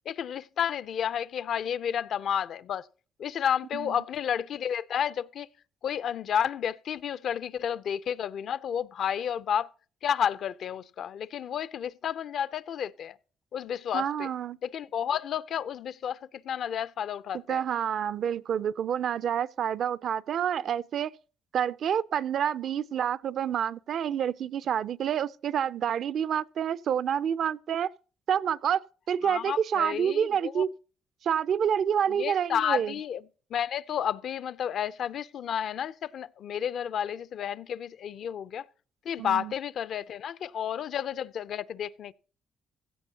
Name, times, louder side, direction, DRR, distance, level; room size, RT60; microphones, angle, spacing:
voice 1, 0.1-2.9 3.2-5.5 5.8-9.7 10.0-13.2 13.5-14.3 14.6-16.2 16.4-17.6 29.2-30.6 32.1-33.2 33.5-38.7 39.0-42.1, left 8 dB, 65° left, 0.5 m, -31 dB
voice 2, 13.9-14.6 17.5-21.1 21.5-27.9 28.3-28.8 29.1-30.7 31.2-33.0 39.2-39.5, right 8 dB, 65° right, 0.5 m, -28 dB
16.5 x 14.5 x 2.9 m
cardioid pair, 90°, 0 cm